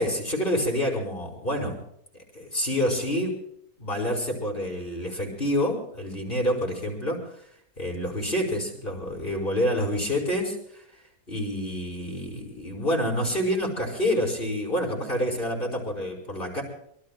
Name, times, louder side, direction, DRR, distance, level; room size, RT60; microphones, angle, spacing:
voice 1, 0.0-1.8 2.3-3.3 3.8-7.5 7.8-16.6, equal, 35° left, -1 dB, 5.0 m, -28 dB
24.5 x 23.0 x 2.4 m, 0.72 s
omnidirectional pair, 1.7 m